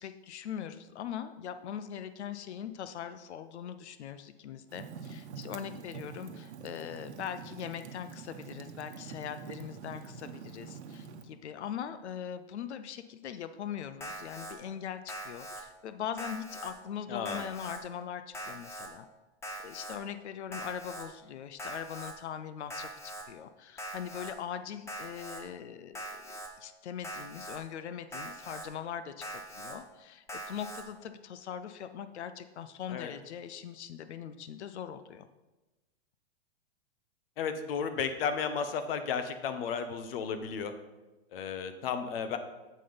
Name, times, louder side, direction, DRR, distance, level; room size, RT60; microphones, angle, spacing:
voice 1, 0.0-19.1 19.6-26.2 26.6-35.3, left 9 dB, 85° left, 11 dB, 0.6 m, -41 dB
Fire, 4.7-11.2, right 6 dB, 90° right, 1.0 m, -46 dB
Alarm, 14.0-14.5 15.1-15.6 16.2-16.7 17.3-17.8 18.3-18.9 19.4-20.0 20.5-21.1 21.6-22.1 22.7-23.2 23.8-24.3 24.9-25.4 26.0-26.5 27.0-27.6 28.1-28.7 29.2-29.8 30.3-30.8, right 1 dB, 10° left, 0.9 m, -42 dB
voice 2, 17.1-17.4 32.9-33.1 37.4-40.7 41.3-42.4, left 6 dB, 60° left, 9 dB, 1.0 m, -33 dB
7.6 x 5.6 x 5.1 m, 1.1 s
hypercardioid pair, 140°, 33 cm